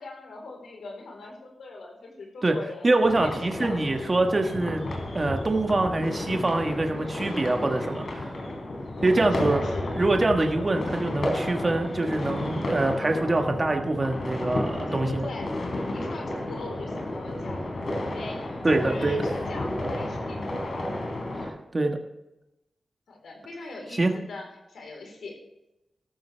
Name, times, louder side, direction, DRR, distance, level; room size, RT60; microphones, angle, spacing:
voice 1, 0.0-3.3 3.6-4.0 8.9-10.0 14.7-15.5 15.9-20.9 23.1-25.4, left 3 dB, 90° left, 2 dB, 4.0 m, -41 dB
voice 2, 2.8-4.9 5.1-8.3 9.0-9.6 10.0-15.3 18.6-19.2 21.7-22.0 24.0-24.1, right 2 dB, 30° right, 4 dB, 1.4 m, -24 dB
sound 1, 3.0-21.5, left 1 dB, 60° left, 3.7 m, -32 dB
14.0 x 13.0 x 3.4 m, 0.93 s
wide cardioid pair, 100°, 0 cm